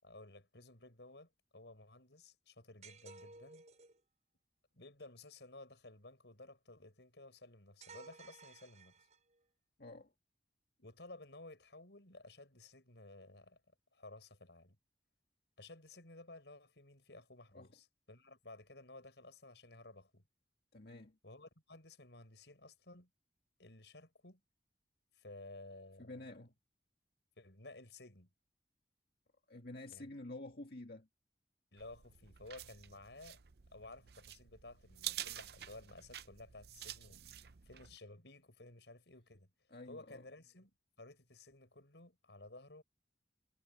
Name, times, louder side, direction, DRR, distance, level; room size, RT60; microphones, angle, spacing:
voice 1, 0.0-3.6 4.7-9.1 10.8-13.6 13.9-14.8 15.6-20.2 21.2-23.1 23.6-24.4 25.1-26.3 27.4-28.3 29.9-30.1 31.7-33.4 33.7-37.2 37.7-39.5 39.9-42.8, left 2 dB, 85° left, 5.8 m, -55 dB
sound 1, 2.8-4.0 7.8-9.4, right 3 dB, 40° right, 7.2 m, -56 dB
voice 2, 9.8-10.1 17.5-17.7 20.7-21.2 26.0-26.5 29.5-31.1 39.7-40.2, left 2 dB, 60° left, 1.9 m, -49 dB
sound 2, 31.8-38.0, right 12 dB, 65° right, 0.6 m, -49 dB
head